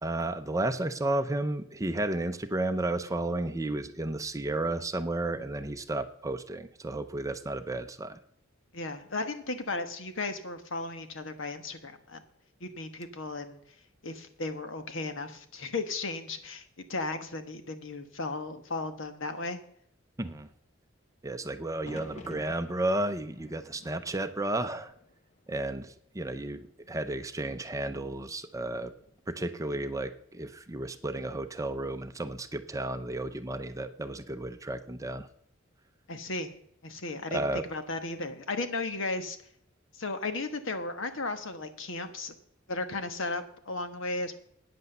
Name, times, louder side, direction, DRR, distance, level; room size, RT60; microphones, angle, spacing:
voice 1, 0.0-8.2 20.2-20.5 21.2-24.9 25.5-28.9 29.3-35.3 37.3-37.6, right 2 dB, 15° right, 9 dB, 0.6 m, -33 dB
voice 2, 8.7-12.2 12.6-13.6 14.0-19.6 36.1-36.5 36.8-39.4 39.9-42.3 42.7-44.4, left 3 dB, 70° left, 8 dB, 1.3 m, -35 dB
sound 1, 21.8-25.8 26.2-26.9 28.8-29.3, left 1 dB, 35° left, 1.2 m, -51 dB
9.3 x 8.1 x 6.7 m, 0.66 s
head